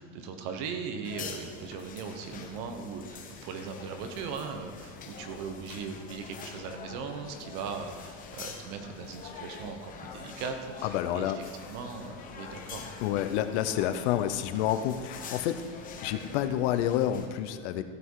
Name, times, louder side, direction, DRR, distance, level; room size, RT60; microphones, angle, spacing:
voice 1, 0.0-13.0, right 5 dB, 50° right, 6 dB, 1.2 m, -39 dB
sound 1, 1.0-17.3, left 5 dB, 20° left, 1.0 m, -45 dB
voice 2, 10.8-11.4 13.0-15.6 16.0-17.8, left 11 dB, 65° left, 10 dB, 0.8 m, -29 dB
15.0 x 7.8 x 4.8 m, 2.2 s
cardioid pair, 175°, 37 cm